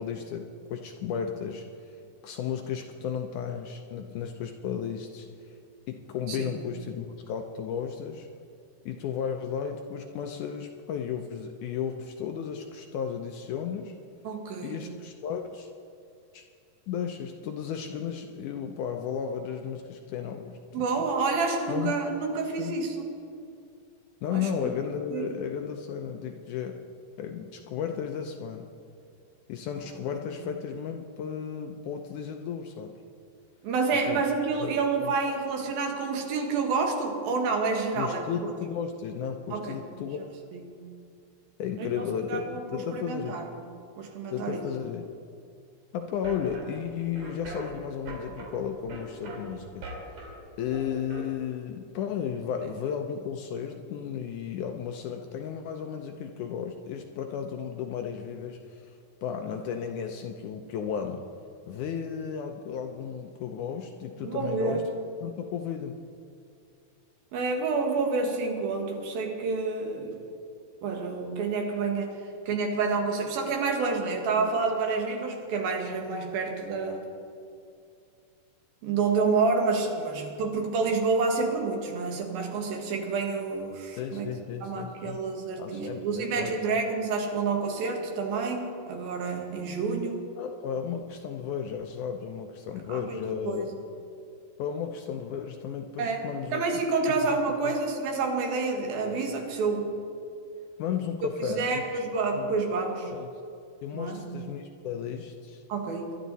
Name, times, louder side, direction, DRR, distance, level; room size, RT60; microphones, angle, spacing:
voice 1, 0.0-5.6 5.9-8.3 8.9-13.9 14.6-15.7 16.3-16.4 16.9-21.1 21.7-21.9 22.6-22.8 24.2-26.8 27.2-28.7 29.5-33.0 33.9-34.2 34.6-34.7 35.0-35.1 38.0-40.2 41.6-43.4 44.3-45.1 45.9-50.3 50.6-61.3 61.7-64.9 65.2-66.0 84.0-85.2 85.6-86.6 90.4-93.7 94.6-96.6 97.6-97.7 100.8-102.0 102.3-102.6 103.1-103.3 103.8-105.6, left 7 dB, 75° left, 4 dB, 1.9 m, -34 dB
voice 2, 6.3-6.6 14.2-14.8 20.7-23.0 24.3-24.5 25.1-25.3 30.1-30.2 33.6-38.5 39.5-39.8 40.5-40.8 41.8-43.5 44.0-44.6 64.2-64.8 67.3-70.1 70.8-72.2 72.5-77.0 78.8-84.3 84.6-90.2 92.9-93.2 93.4-93.7 96.0-96.2 96.5-99.9 101.5-103.1 103.9-104.2 105.7-106.2, right 4 dB, 80° right, 2 dB, 3.4 m, -29 dB
sound 1, 46.1-51.2, right 2 dB, 55° right, 3.4 m, -42 dB
22.5 x 11.5 x 4.1 m, 2.5 s
omnidirectional pair, 4.1 m